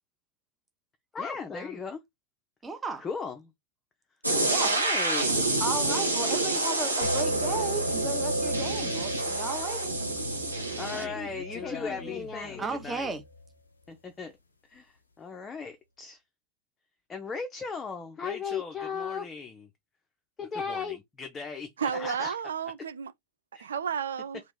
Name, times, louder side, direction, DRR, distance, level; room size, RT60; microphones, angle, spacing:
voice 1, 1.1-2.0 3.0-3.4 4.6-5.6 10.7-13.1 13.9-14.3 14.7-14.9 15.2-16.2 17.1-19.7 20.4-22.3 23.5-23.7, left 5 dB, 20° left, 0.5 m, -36 dB
voice 2, 2.6-3.1 4.5-4.7 5.6-9.9 12.6-13.2, right 3 dB, 15° right, 0.7 m, -35 dB
sound 1, 4.2-11.0, right 2 dB, 85° right, 0.8 m, -28 dB
sound 2, 7.0-13.5, equal, 80° left, 0.6 m, -35 dB
voice 3, 21.8-23.1 23.6-24.4, right 7 dB, 65° right, 0.3 m, -32 dB
2.9 x 2.5 x 3.4 m
figure-of-eight pair, 90°, 0 cm